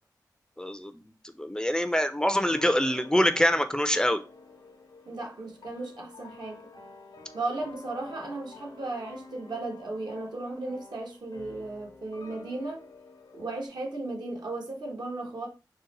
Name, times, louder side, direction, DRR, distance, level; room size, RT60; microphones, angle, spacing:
voice 1, 0.6-4.2, equal, 10° left, 0.4 m, -25 dB
sound 1, 2.4-13.7, left 3 dB, 85° left, 0.7 m, -49 dB
voice 2, 5.0-6.6 7.3-12.8 13.3-15.5, right 2 dB, 75° right, 1.0 m, -35 dB
3.8 x 2.1 x 4.0 m
wide cardioid pair, 70°, 7 cm